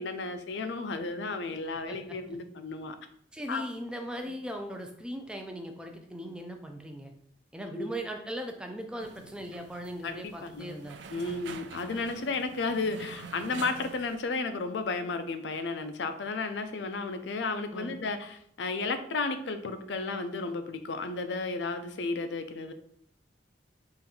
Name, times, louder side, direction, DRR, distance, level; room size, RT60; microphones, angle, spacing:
voice 1, 0.0-3.0 3.5-3.6 7.7-7.9 10.0-10.8 11.1-22.7, left 3 dB, 75° left, 8 dB, 0.5 m, -33 dB
voice 2, 3.3-7.1 7.5-11.0 17.7-17.9, equal, 5° right, 4 dB, 0.4 m, -39 dB
sound 1, 9.0-14.2, right 5 dB, 75° right, 0.4 m, -46 dB
3.8 x 2.6 x 4.2 m, 0.66 s
head